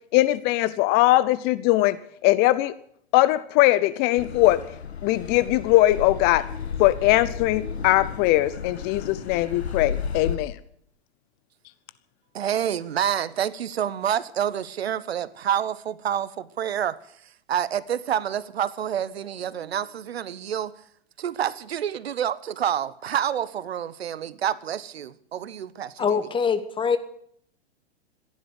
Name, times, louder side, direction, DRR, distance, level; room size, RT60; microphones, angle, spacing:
voice 1, 0.1-2.0 2.2-2.7 3.1-4.6 5.0-6.5 6.8-10.6, left 17 dB, 30° left, 0.6 m, -20 dB
Car passing by / Accelerating revving vroom, 4.2-10.4, left 6 dB, 80° left, 2.1 m, -33 dB
voice 2, 12.3-17.0 17.5-20.7 21.2-26.1, right 9 dB, 70° right, 1.0 m, -28 dB
voice 3, 26.0-27.0, left 6 dB, 15° left, 1.4 m, -23 dB
15.5 x 11.0 x 8.1 m
hypercardioid pair, 110°, 32 cm